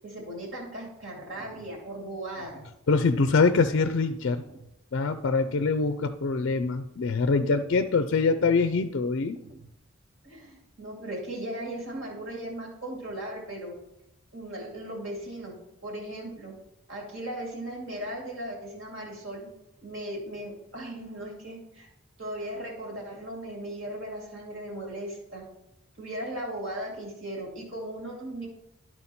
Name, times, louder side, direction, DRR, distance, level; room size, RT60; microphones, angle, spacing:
voice 1, 0.0-2.6 10.2-13.7 14.3-15.6 15.8-16.5 16.9-19.5 19.8-21.9 22.2-25.5 26.0-28.5, right 1 dB, 60° right, -1 dB, 2.4 m, -37 dB
sound 1, 1.3-1.8 2.3-2.8 3.3-3.8 4.3-4.7 5.3-5.8 6.3-6.7 7.4-7.8 8.3-8.8 9.3-9.8, right 2 dB, 30° right, 0.7 m, -51 dB
voice 2, 2.9-4.4 4.9-9.4, left 4 dB, 55° left, 9 dB, 0.4 m, -24 dB
12.0 x 4.5 x 4.2 m, 0.85 s
head